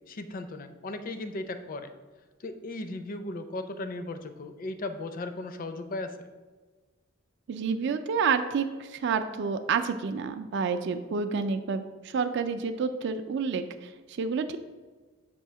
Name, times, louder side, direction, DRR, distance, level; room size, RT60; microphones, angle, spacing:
voice 1, 0.1-1.9 2.4-6.2, left 2 dB, 45° left, 9 dB, 0.4 m, -36 dB
voice 2, 7.5-14.6, right 5 dB, 60° right, 9 dB, 0.4 m, -29 dB
6.8 x 2.7 x 5.6 m, 1.3 s
head